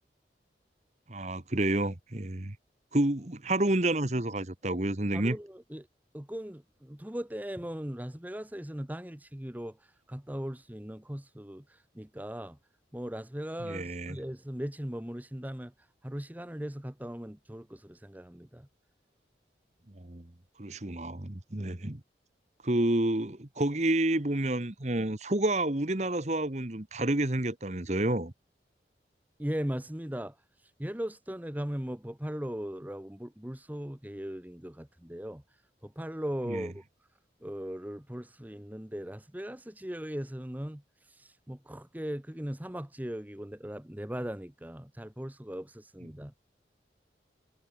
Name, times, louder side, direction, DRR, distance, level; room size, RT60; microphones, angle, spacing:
voice 1, 1.1-2.6 2.9-5.4 13.6-14.2 20.0-20.3 20.6-22.0 22.6-28.3 36.5-36.7, right 1 dB, 40° right, 1.4 m, -29 dB
voice 2, 5.1-5.9 6.1-12.6 12.9-15.7 16.0-18.7 29.4-30.4 30.8-35.4 35.8-36.8 37.4-40.8 41.1-46.3, equal, 10° right, 0.9 m, -38 dB
head